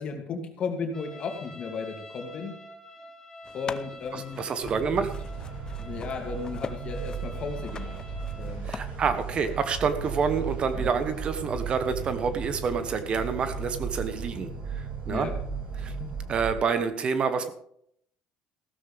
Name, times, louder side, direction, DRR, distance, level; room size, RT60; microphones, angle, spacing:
voice 1, 0.0-2.5 3.5-4.4 5.8-8.0 8.4-8.7 10.8-10.9 15.1-15.3 16.0-16.1, left 5 dB, 45° left, 3 dB, 2.7 m, -34 dB
Trumpet, 0.9-8.6, left 1 dB, 15° left, 6.1 m, -48 dB
sound 1, 3.4-8.8, left 5 dB, 30° left, 0.7 m, -43 dB
voice 2, 4.1-5.1 8.6-15.3 15.8-15.9 16.3-17.5, right 5 dB, 40° right, 10 dB, 1.2 m, -28 dB
sound 2, 4.6-16.5, right 5 dB, 55° right, 6.3 m, -36 dB
15.5 x 13.0 x 3.5 m, 0.69 s
cardioid pair, 120°, 3 cm